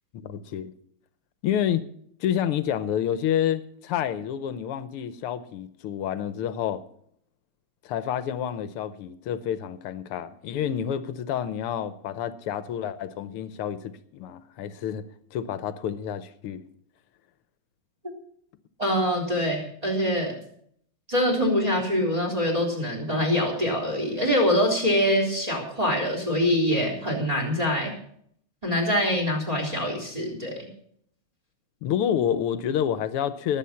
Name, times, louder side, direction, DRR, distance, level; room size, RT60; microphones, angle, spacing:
voice 1, 0.1-0.7 1.4-1.9 2.2-6.8 7.8-15.1 15.3-16.6 31.8-33.6, left 9 dB, 90° left, 13 dB, 1.8 m, -29 dB
voice 2, 18.8-20.4 21.1-27.9 28.6-30.7, equal, 15° right, 2 dB, 3.8 m, -24 dB
20.0 x 8.2 x 5.7 m, 0.66 s
omnidirectional pair, 2.4 m